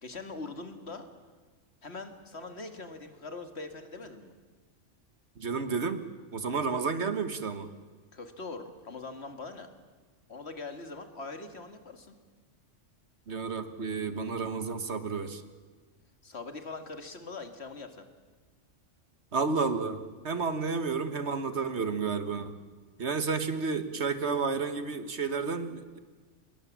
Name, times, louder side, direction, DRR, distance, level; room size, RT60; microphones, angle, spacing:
voice 1, 0.0-1.1 1.8-4.3 8.1-9.7 10.3-12.1 16.2-18.1, left 3 dB, 55° left, 7 dB, 2.4 m, -42 dB
voice 2, 5.4-6.0 6.3-7.7 13.3-15.4 19.3-22.5 23.0-26.0, right 4 dB, 60° right, 10 dB, 1.8 m, -31 dB
25.5 x 21.5 x 7.5 m, 1.4 s
omnidirectional pair, 1.3 m